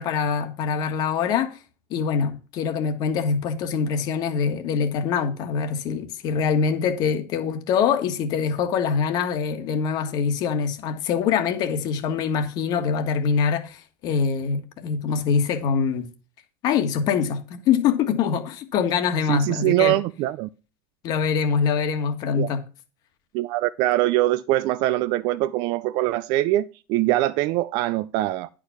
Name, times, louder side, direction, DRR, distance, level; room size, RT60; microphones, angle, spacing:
voice 1, 0.0-1.6 1.9-16.1 16.6-20.0 21.0-22.6, left 6 dB, 45° left, 1.5 m, -24 dB
voice 2, 19.3-20.5 22.4-22.5 23.3-28.5, right 16 dB, 50° right, 0.4 m, -23 dB
10.0 x 4.9 x 5.7 m
supercardioid pair, 150°, 9 cm